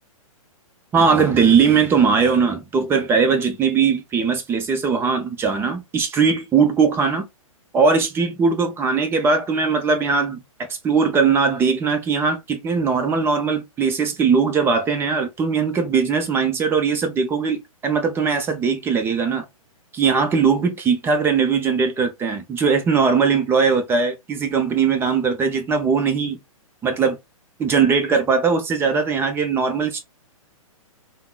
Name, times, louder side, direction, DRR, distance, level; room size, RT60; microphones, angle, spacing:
voice 1, 0.9-7.3 7.7-19.4 19.9-26.4 26.8-27.2 27.6-30.0, right 5 dB, 15° right, 0.5 m, -20 dB
3.5 x 2.0 x 2.3 m
hypercardioid pair, 125°, 18 cm